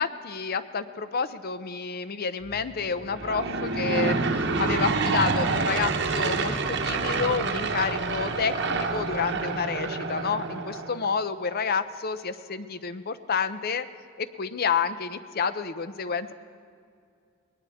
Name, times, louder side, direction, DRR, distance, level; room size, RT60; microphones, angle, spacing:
voice 1, 0.0-13.9 14.2-16.3, left 5 dB, 50° left, 12 dB, 0.6 m, -29 dB
sound 1, 2.4-9.5, equal, 5° left, 1.3 m, -47 dB
Aircraft / Engine, 3.1-11.1, right 4 dB, 60° right, 0.9 m, -27 dB
21.0 x 18.5 x 3.6 m, 2.3 s
head